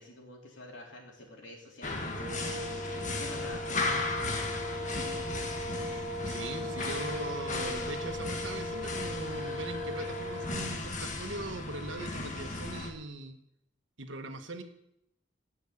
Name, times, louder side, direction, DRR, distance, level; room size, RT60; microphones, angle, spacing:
voice 1, 0.0-5.5 5.8-6.0, left 1 dB, 65° left, 0 dB, 3.6 m, -49 dB
sound 1, 1.8-12.9, left 2 dB, 40° left, 1.7 m, -36 dB
sound 2, 2.1-10.8, left 1 dB, 25° right, 4.3 m, -38 dB
voice 2, 6.3-13.4 14.0-14.6, right 2 dB, 75° right, 6 dB, 1.5 m, -40 dB
17.5 x 6.5 x 8.6 m, 0.80 s
head